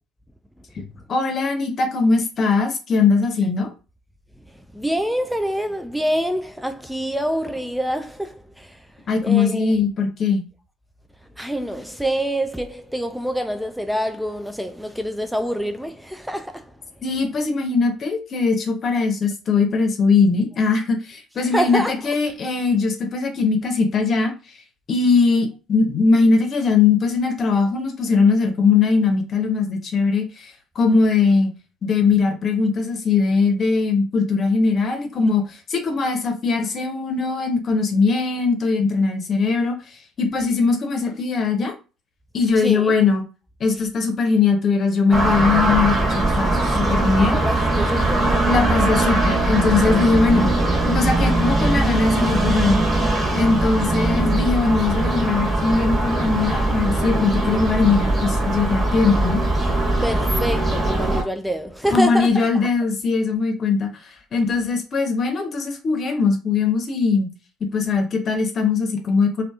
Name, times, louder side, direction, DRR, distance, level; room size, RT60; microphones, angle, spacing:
voice 1, 1.1-3.7 9.1-10.4 17.0-24.3 24.9-31.5 31.8-39.7 40.2-41.7 42.3-43.2 43.6-47.4 48.5-50.5 50.9-52.9 53.3-59.4 61.9-63.9 64.3-67.3 67.7-69.4, left 4 dB, 50° left, 0.7 m, -20 dB
voice 2, 4.5-8.9 9.2-9.7 11.4-16.8 21.5-22.0 42.6-42.9 47.3-48.5 59.6-62.5, equal, ahead, 0.3 m, -26 dB
sound 1, 45.1-61.2, right 2 dB, 30° right, 1.3 m, -20 dB
2.6 x 2.4 x 2.3 m
hypercardioid pair, 65°, 0 cm